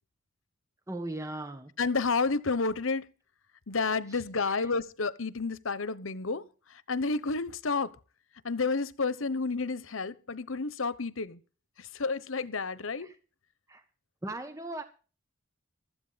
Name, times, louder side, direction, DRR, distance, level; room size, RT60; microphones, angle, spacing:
voice 1, 0.9-1.7 4.1-4.7 13.0-13.2 13.7-13.8 14.2-14.8, right 2 dB, 15° right, 1.3 m, -39 dB
voice 2, 1.8-3.1 3.7-6.4 6.9-7.9 8.4-11.4 11.8-13.1, left 4 dB, 80° left, 1.0 m, -30 dB
15.5 x 13.0 x 4.1 m
head